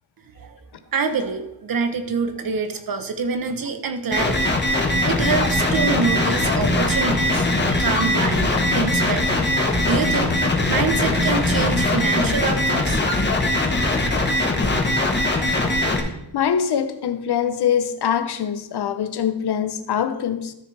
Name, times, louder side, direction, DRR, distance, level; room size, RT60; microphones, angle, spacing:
voice 1, 0.9-10.4 10.7-13.0, right 5 dB, 50° right, 1.0 m, -26 dB
sound 1, 4.1-16.0, left 2 dB, 25° left, 1.2 m, -21 dB
sound 2, 4.9-12.2, left 1 dB, 30° right, 3.0 m, -28 dB
voice 2, 16.3-20.5, left 8 dB, 60° left, 0.8 m, -23 dB
13.5 x 6.5 x 3.3 m
wide cardioid pair, 140°, 44 cm